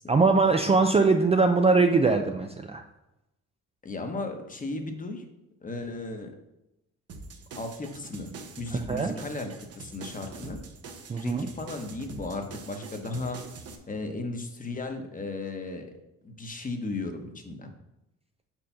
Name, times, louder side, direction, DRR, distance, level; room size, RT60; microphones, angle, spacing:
voice 1, 0.1-2.8 8.9-9.1 11.1-11.5, right 4 dB, 20° right, 5 dB, 0.4 m, -22 dB
voice 2, 3.8-5.2 5.6-6.3 7.6-10.6 11.2-13.4 13.9-15.9 16.2-17.7, left 2 dB, 25° left, 5 dB, 1.0 m, -35 dB
sound 1, 7.1-13.8, right 3 dB, 55° right, 0.9 m, -44 dB
4.9 x 4.5 x 5.6 m, 0.91 s
cardioid pair, 90°, 30 cm